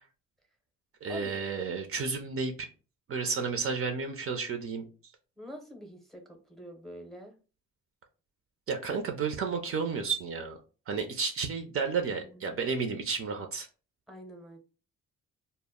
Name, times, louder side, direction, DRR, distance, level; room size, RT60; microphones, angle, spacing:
voice 1, 1.0-2.7 3.1-4.8 8.7-10.6 10.9-13.7, right 5 dB, 50° right, 4 dB, 0.5 m, -32 dB
voice 2, 5.4-7.3 12.3-12.6 14.1-14.6, equal, ahead, 2 dB, 0.7 m, -45 dB
2.1 x 2.0 x 3.5 m, 0.35 s
cardioid pair, 90°, 30 cm